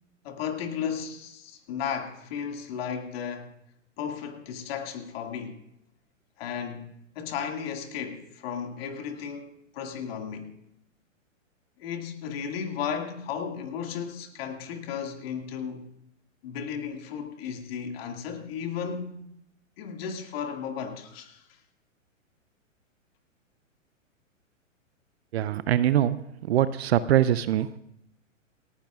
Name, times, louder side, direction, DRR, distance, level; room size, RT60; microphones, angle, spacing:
voice 1, 0.2-3.5 4.0-5.6 6.4-10.6 11.8-15.9 16.4-19.2 19.8-21.5, left 7 dB, 45° left, 2.2 m, -34 dB
voice 2, 25.3-27.8, right 11 dB, 50° right, 0.7 m, -23 dB
29.0 x 10.0 x 2.4 m
figure-of-eight pair, 115°, 39 cm